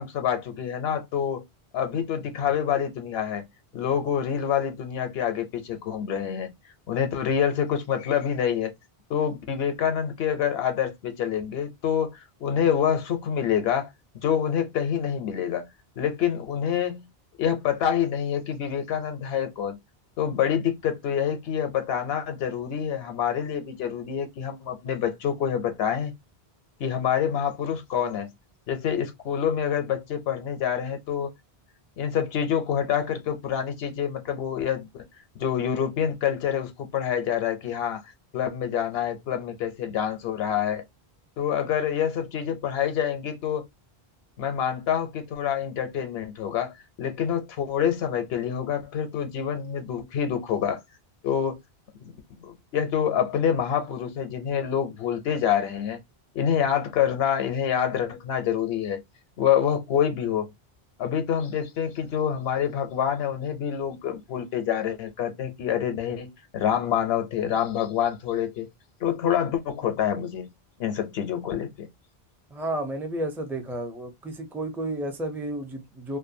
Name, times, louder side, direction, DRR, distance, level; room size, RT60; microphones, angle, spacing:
voice 1, 0.0-1.5 1.7-3.4 3.7-6.5 6.9-8.7 9.1-13.9 14.2-15.7 16.0-17.1 17.4-19.8 20.2-26.1 26.8-28.3 28.7-31.3 32.0-35.0 35.4-38.0 38.3-40.8 41.4-43.7 44.4-46.7 47.0-50.8 51.2-51.6 52.0-56.0 56.3-59.0 59.4-60.5 61.0-68.7 69.0-70.5 70.8-71.9, left 8 dB, 75° left, 0.8 m, -27 dB
voice 2, 72.5-76.2, right 1 dB, 5° right, 0.3 m, -32 dB
2.5 x 2.2 x 2.6 m
omnidirectional pair, 1.1 m